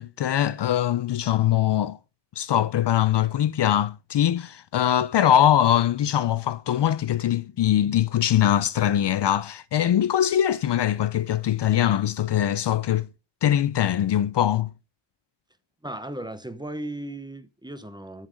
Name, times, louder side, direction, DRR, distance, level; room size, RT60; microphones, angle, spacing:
voice 1, 0.0-2.0 2.4-13.1 13.4-14.7, left 11 dB, 60° left, 0.5 m, -22 dB
voice 2, 15.8-18.3, right 1 dB, 10° right, 0.8 m, -36 dB
7.5 x 7.2 x 5.0 m
wide cardioid pair, 100°, 48 cm